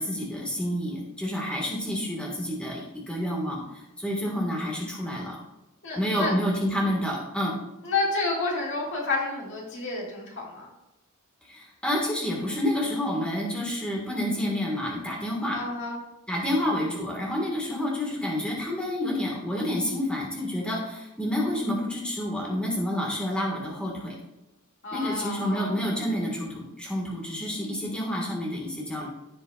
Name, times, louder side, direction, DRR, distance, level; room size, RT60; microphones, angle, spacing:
voice 1, 0.0-5.4 5.9-7.5 11.4-15.6 16.3-24.1 24.9-29.1, left 1 dB, 5° left, -2 dB, 1.6 m, -29 dB
voice 2, 5.8-6.3 7.8-10.7 15.5-16.0 24.8-25.7, left 3 dB, 55° left, -3 dB, 2.1 m, -30 dB
15.5 x 5.4 x 2.4 m, 0.95 s
head